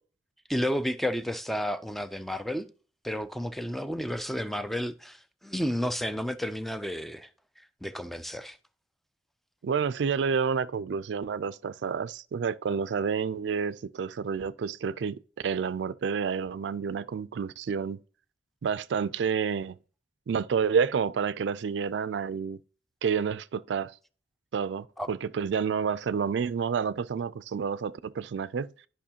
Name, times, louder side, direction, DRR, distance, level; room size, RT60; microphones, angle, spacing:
voice 1, 0.5-2.7 3.0-7.3 7.8-8.6 25.0-25.1, equal, ahead, 0.3 m, -31 dB
voice 2, 9.6-18.0 18.6-19.8 20.3-22.6 23.0-23.9 24.5-28.7, right 6 dB, 75° right, 0.4 m, -29 dB
11.0 x 5.5 x 2.8 m
head